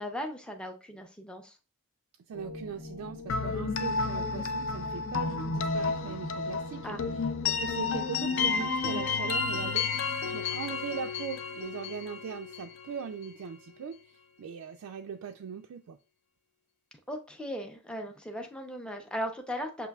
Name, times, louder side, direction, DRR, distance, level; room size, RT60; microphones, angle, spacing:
voice 1, 0.0-1.6 6.8-7.0 17.1-19.9, equal, 5° left, 0.5 m, -37 dB
sound 1, 2.3-8.7, left 3 dB, 85° left, 1.1 m, -45 dB
voice 2, 2.3-7.0 7.5-16.0, right 7 dB, 75° right, 0.3 m, -40 dB
sound 2, 3.3-13.1, left 4 dB, 60° left, 0.4 m, -31 dB
6.7 x 2.6 x 2.3 m
head